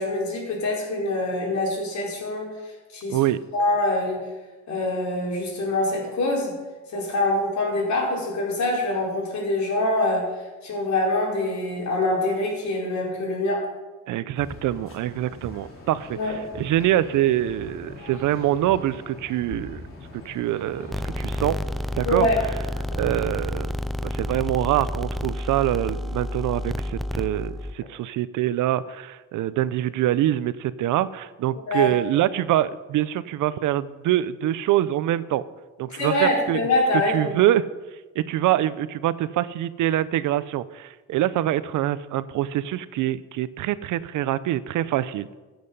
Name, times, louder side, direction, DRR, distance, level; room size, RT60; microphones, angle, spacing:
voice 1, 0.0-2.5 2.9-3.2 3.5-4.2 4.7-6.5 6.9-10.3 10.6-13.6 16.1-16.4 22.0-22.4 31.7-31.9 35.9-37.3, left 2 dB, 65° left, -3 dB, 4.9 m, -24 dB
voice 2, 14.1-19.8 20.2-20.9 21.2-21.6 22.0-22.3 22.9-23.7 24.0-35.4 35.8-36.7 37.1-37.6 38.1-45.3, right 13 dB, 80° right, 16 dB, 0.7 m, -24 dB
sound 1, 14.4-23.1, left 2 dB, 45° left, 3.6 m, -42 dB
sound 2, 20.9-27.7, left 1 dB, ahead, 0.5 m, -30 dB
15.0 x 7.9 x 5.5 m, 1.2 s
cardioid pair, 90°, 30 cm